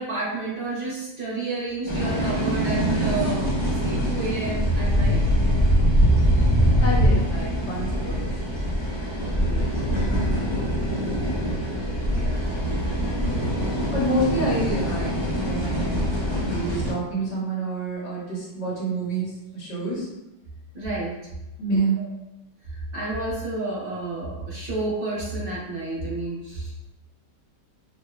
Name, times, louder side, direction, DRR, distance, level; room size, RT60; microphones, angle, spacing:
voice 1, 0.0-5.2 9.2-9.7 10.5-10.7 12.1-12.5 20.7-21.2 22.0-22.1 22.6-26.9, right 2 dB, 35° right, -6 dB, 1.2 m, -31 dB
sound 1, 1.9-16.9, equal, 20° right, 1.1 m, -23 dB
voice 2, 6.8-8.3 10.1-10.4 13.9-20.1 21.6-22.0, right 2 dB, 75° left, -5 dB, 1.9 m, -28 dB
5.1 x 2.8 x 2.5 m, 0.97 s
omnidirectional pair, 1.9 m